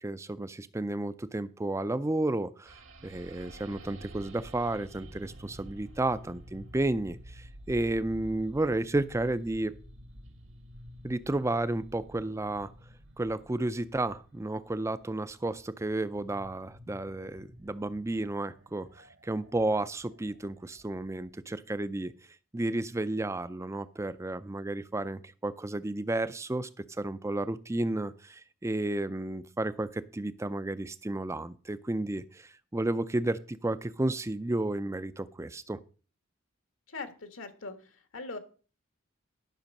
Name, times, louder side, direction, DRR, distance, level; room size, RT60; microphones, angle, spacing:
voice 1, 0.0-2.7 3.0-9.7 11.0-12.7 13.2-22.1 22.5-26.7 27.0-35.8, right 2 dB, 15° right, 15 dB, 0.4 m, -32 dB
sound 1, 2.7-21.3, equal, 65° right, 1.4 m, -51 dB
voice 2, 36.9-38.4, left 3 dB, 75° left, 9 dB, 1.4 m, -41 dB
11.5 x 6.1 x 5.3 m, 0.38 s
head